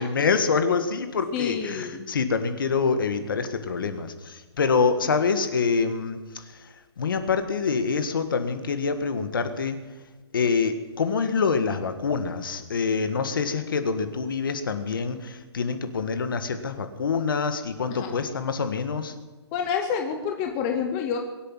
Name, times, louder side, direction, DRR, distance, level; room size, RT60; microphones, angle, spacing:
voice 1, 0.0-6.2 7.0-9.8 10.3-19.1, left 5 dB, 50° left, 9 dB, 1.8 m, -26 dB
voice 2, 1.3-2.1 17.9-18.2 19.5-21.2, left 7 dB, 10° left, 4 dB, 0.7 m, -28 dB
23.5 x 8.3 x 7.4 m, 1.3 s
hypercardioid pair, 175°, 14 cm